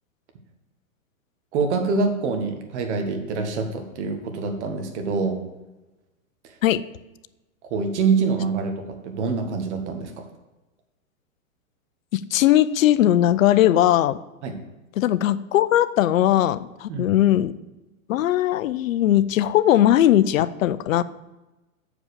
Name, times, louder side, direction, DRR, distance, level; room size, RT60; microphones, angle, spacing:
voice 1, 1.5-5.4 6.4-6.5 7.6-10.3 14.4-14.6 16.9-17.1, right 4 dB, 55° right, 5 dB, 1.6 m, -25 dB
voice 2, 12.1-14.2 15.0-17.5 18.1-21.0, left 12 dB, 70° left, 15 dB, 0.6 m, -19 dB
7.1 x 5.1 x 6.7 m, 1.0 s
hypercardioid pair, 150°, 42 cm